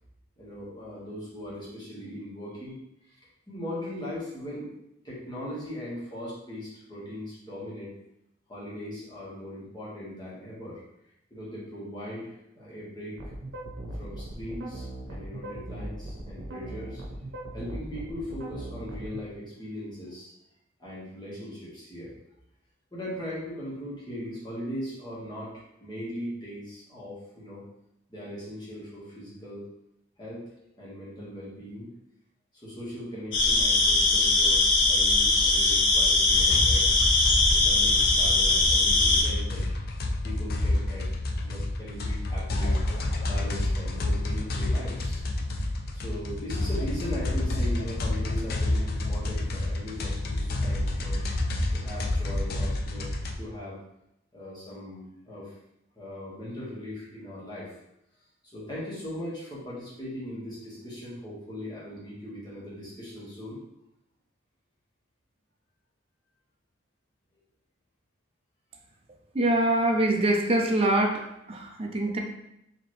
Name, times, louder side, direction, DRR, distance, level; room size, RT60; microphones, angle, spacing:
voice 1, 0.4-3.2 3.5-4.7 5.0-7.9 8.5-10.8 11.3-13.2 13.9-17.0 17.5-20.3 20.8-22.1 22.9-25.5 25.8-27.6 28.1-29.6 30.2-31.9 32.5-37.0 37.6-39.7 40.2-41.1 41.4-42.8 43.3-45.2 45.9-51.2 51.7-53.8 54.3-55.6 55.9-57.8 58.5-63.6, left 1 dB, 25° left, 1.5 m, -39 dB
sound 1, 13.2-19.2, right 1 dB, 85° right, 0.8 m, -39 dB
sound 2, 33.3-39.2, left 3 dB, 80° left, 0.9 m, -21 dB
sound 3, 36.3-53.4, left 1 dB, 50° left, 0.4 m, -29 dB
voice 2, 69.3-72.2, right 1 dB, 30° right, 0.5 m, -24 dB
4.3 x 2.9 x 3.2 m
head